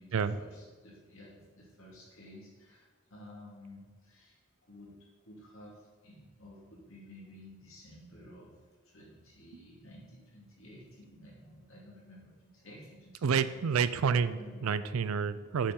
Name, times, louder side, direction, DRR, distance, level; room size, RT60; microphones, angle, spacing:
voice 1, 0.0-8.5 8.8-13.8 14.4-14.9, left 1 dB, 70° left, -4 dB, 2.5 m, -53 dB
voice 2, 13.2-15.7, right 6 dB, 85° right, 14 dB, 0.4 m, -29 dB
7.1 x 5.4 x 5.2 m, 1.4 s
head